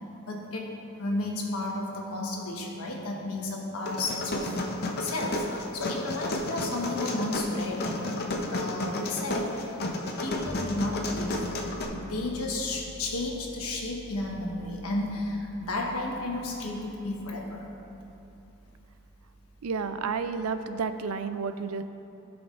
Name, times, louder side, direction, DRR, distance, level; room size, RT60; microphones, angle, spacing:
voice 1, 0.3-0.7 1.0-4.5 5.0-5.5 5.7-8.2 8.5-9.7 10.2-11.4 11.9-17.7, left 2 dB, 85° left, -1 dB, 1.2 m, -32 dB
sound 1, 3.9-11.8, left 1 dB, 45° left, 0.7 m, -32 dB
sound 2, 10.5-20.6, right 1 dB, 10° right, 0.3 m, -47 dB
voice 2, 19.6-21.8, right 5 dB, 85° right, 10 dB, 0.4 m, -31 dB
14.5 x 6.1 x 2.5 m, 2.9 s
head